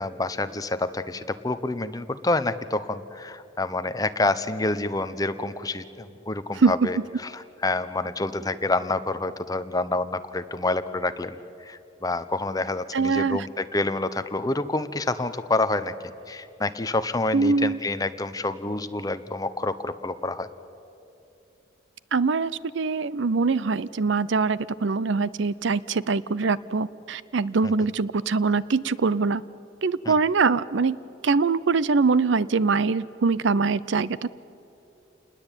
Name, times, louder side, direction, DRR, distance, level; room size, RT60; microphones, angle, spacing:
voice 1, 0.0-15.9 16.3-20.5 27.6-27.7 30.0-30.2, left 2 dB, 20° left, 11 dB, 0.7 m, -28 dB
voice 2, 6.6-6.9 12.9-13.5 17.3-17.8 22.1-29.4 29.8-31.0 31.2-34.3, right 4 dB, 65° right, 18 dB, 0.5 m, -23 dB
28.0 x 20.0 x 9.0 m, 2.8 s
head